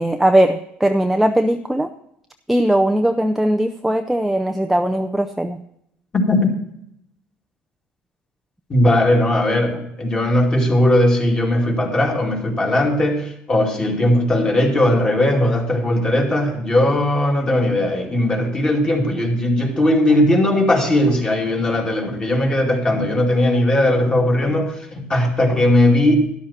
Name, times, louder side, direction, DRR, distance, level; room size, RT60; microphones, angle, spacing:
voice 1, 0.0-1.9 2.5-5.6, right 1 dB, 5° right, 5 dB, 0.5 m, -19 dB
voice 2, 6.1-6.5 8.7-26.1, left 1 dB, 20° left, 1 dB, 2.5 m, -18 dB
12.5 x 11.5 x 4.3 m, 0.76 s
cardioid pair, 140°, 4 cm